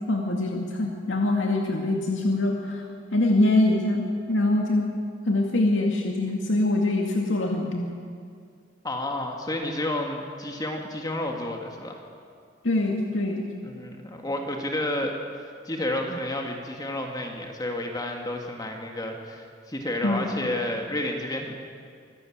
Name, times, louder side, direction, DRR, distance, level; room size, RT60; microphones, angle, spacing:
voice 1, 0.0-2.8 3.1-4.9 5.3-7.9 12.6-13.5 20.0-20.3, left 2 dB, 80° left, 0 dB, 2.1 m, -24 dB
voice 2, 8.8-12.0 13.6-21.6, left 1 dB, 20° left, 2 dB, 1.8 m, -31 dB
25.0 x 14.0 x 8.7 m, 2.2 s
head